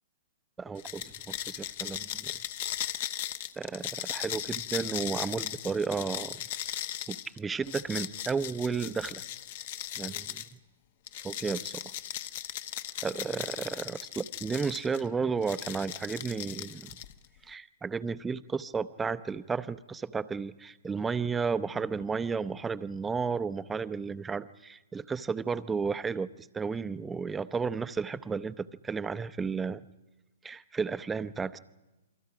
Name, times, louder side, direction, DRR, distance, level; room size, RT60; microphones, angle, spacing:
voice 1, 0.6-2.3 3.6-6.4 7.1-9.2 10.0-10.5 11.2-11.8 13.0-16.9 17.4-29.8 30.4-31.6, right 5 dB, 10° right, 13 dB, 0.7 m, -33 dB
sound 1, 0.8-10.5 11.1-15.0 15.4-17.2, left 11 dB, 50° left, 1.0 m, -38 dB
29.5 x 23.5 x 5.1 m, 1.1 s
hypercardioid pair, 130°, 0 cm